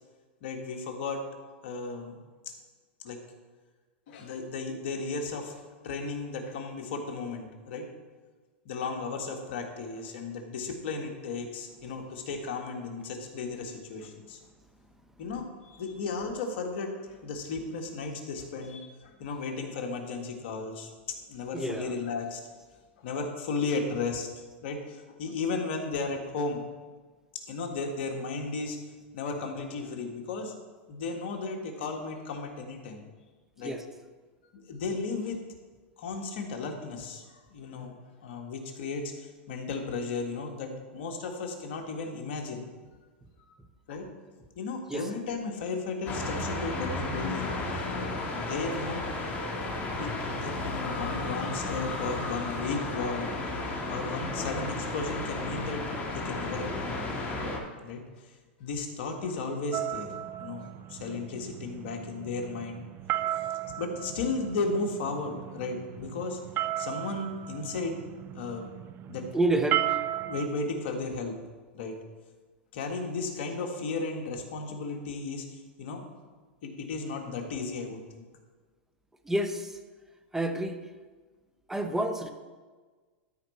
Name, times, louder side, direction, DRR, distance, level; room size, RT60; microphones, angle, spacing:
voice 1, 0.4-1.2 1.6-2.2 3.0-3.2 4.1-7.9 8.6-14.4 15.2-20.9 21.3-22.4 23.0-24.3 24.6-26.7 27.5-28.8 29.1-30.5 30.9-33.1 33.6-33.8 34.5-35.4 36.0-42.7 43.9-44.1 44.5-49.0 50.0-53.4 53.9-57.2 57.8-58.3 58.6-60.1 60.4-62.8 63.8-66.4 66.8-68.0 68.3-68.7 69.1-69.2 69.7-69.9 70.2-71.4 71.7-71.9 72.7-76.0 76.6-78.3, left 3 dB, 65° left, 3 dB, 1.6 m, -35 dB
sound 1, 46.1-57.6, left 2 dB, 25° left, 1.7 m, -33 dB
sound 2, 59.7-70.5, right 13 dB, 35° right, 0.3 m, -35 dB
voice 2, 69.3-69.8 79.3-79.6 80.3-80.8 81.7-82.3, right 1 dB, 5° right, 7 dB, 0.8 m, -28 dB
13.0 x 4.7 x 4.2 m, 1.4 s
hypercardioid pair, 115°, 7 cm